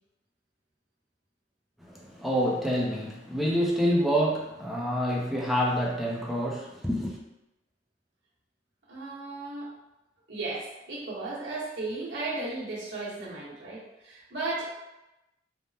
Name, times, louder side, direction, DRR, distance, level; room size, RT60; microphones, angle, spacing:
voice 1, 1.9-7.2, equal, ahead, -3 dB, 0.4 m, -27 dB
voice 2, 8.9-9.7 10.3-14.7, right 2 dB, 70° right, -8 dB, 1.1 m, -35 dB
3.3 x 2.0 x 2.6 m, 0.96 s
head